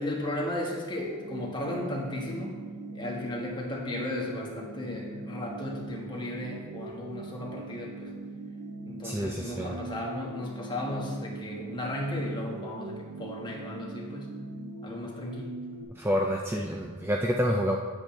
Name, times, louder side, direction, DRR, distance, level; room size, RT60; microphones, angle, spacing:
voice 1, 0.0-2.6 2.9-8.1 8.9-14.4 14.8-15.5, left 1 dB, 20° left, -1 dB, 1.2 m, -35 dB
sound 1, 1.0-15.8, right 2 dB, 85° right, 0.8 m, -41 dB
voice 2, 9.0-9.7 16.0-17.8, equal, 10° right, 0 dB, 0.4 m, -28 dB
8.6 x 7.8 x 3.2 m, 1.5 s
head